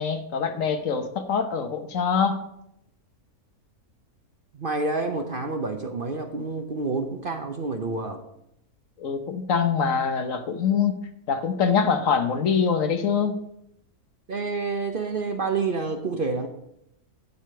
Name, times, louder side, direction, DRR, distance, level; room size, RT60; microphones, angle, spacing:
voice 1, 0.0-2.5 9.0-10.9 11.3-13.4, left 6 dB, 60° left, 8 dB, 1.2 m, -24 dB
voice 2, 4.5-8.2 14.3-16.5, right 3 dB, 45° right, 5 dB, 0.9 m, -28 dB
11.0 x 5.0 x 7.5 m, 0.78 s
omnidirectional pair, 1.6 m